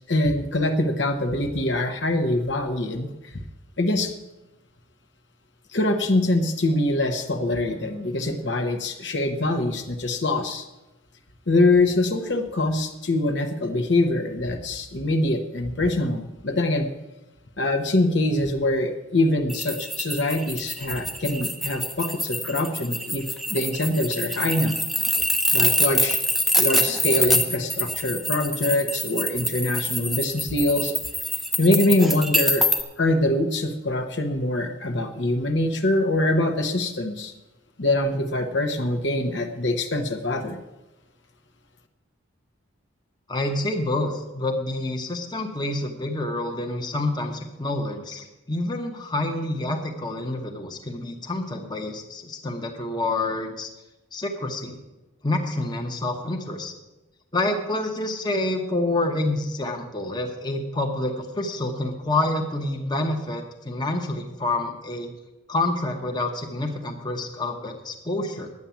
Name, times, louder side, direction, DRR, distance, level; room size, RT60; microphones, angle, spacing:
voice 1, 0.1-3.3 3.8-4.1 5.7-10.7 11.5-16.9 17.6-24.8 25.5-26.2 26.6-30.9 31.6-32.7 33.0-37.3 37.8-40.6, left 1 dB, 60° left, 6 dB, 1.0 m, -24 dB
sound 1, 19.5-32.8, left 1 dB, ahead, 0.7 m, -25 dB
voice 2, 43.3-53.7 54.1-54.8 55.2-56.7 57.3-65.1 65.5-68.5, left 2 dB, 20° left, 3 dB, 1.1 m, -28 dB
11.0 x 8.9 x 7.1 m, 1.0 s
head